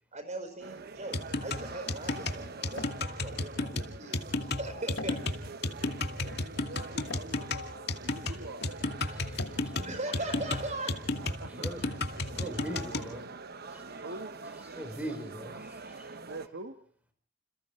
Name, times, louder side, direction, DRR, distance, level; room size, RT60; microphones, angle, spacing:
voice 1, 0.1-5.2 9.8-11.0, right 2 dB, 40° right, 8 dB, 4.9 m, -39 dB
sound 1, 0.6-16.5, right 3 dB, 55° right, 1.1 m, -45 dB
sound 2, 1.1-10.9, left 3 dB, 90° left, 1.6 m, -49 dB
sound 3, 1.1-13.1, left 3 dB, 60° left, 2.2 m, -33 dB
voice 2, 6.4-9.1 11.4-12.0 12.3-13.3 14.0-14.3 16.3-16.7, right 2 dB, 85° right, 7 dB, 1.6 m, -45 dB
voice 3, 9.0-9.8 11.5-11.8 12.2-13.2 13.7-14.0 14.7-16.2, equal, 10° right, 7 dB, 4.9 m, -42 dB
28.5 x 27.5 x 3.3 m, 0.43 s
head